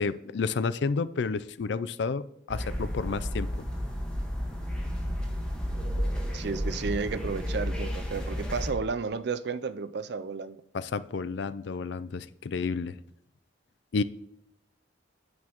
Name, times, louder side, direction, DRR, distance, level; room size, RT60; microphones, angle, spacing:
voice 1, 0.0-3.5 10.7-13.0 13.9-14.0, left 4 dB, 60° left, 0.4 m, -30 dB
sound 1, 2.5-8.7, equal, 5° left, 1.4 m, -32 dB
voice 2, 6.3-10.6, right 5 dB, 55° right, 0.4 m, -32 dB
9.5 x 8.5 x 3.0 m
head